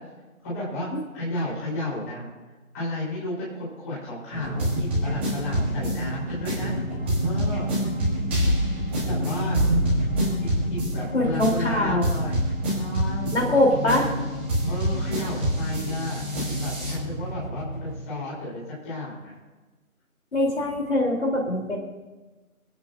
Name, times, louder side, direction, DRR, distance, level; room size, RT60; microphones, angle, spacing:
voice 1, 0.4-0.9 1.1-2.3 2.7-6.7 7.2-7.7 9.0-9.6 10.4-12.4 12.8-13.5 14.7-16.2 16.6-19.4, left 1 dB, 10° left, -8 dB, 3.9 m, -33 dB
sound 1, 4.3-18.0, equal, 10° right, 1.9 m, -27 dB
sound 2, 9.6-12.4, right 3 dB, 85° right, 1.0 m, -29 dB
voice 2, 11.1-12.1 13.3-14.1 20.3-21.8, left 1 dB, 50° left, -1 dB, 3.5 m, -23 dB
27.5 x 9.5 x 2.6 m, 1.2 s
figure-of-eight pair, 165°, 43 cm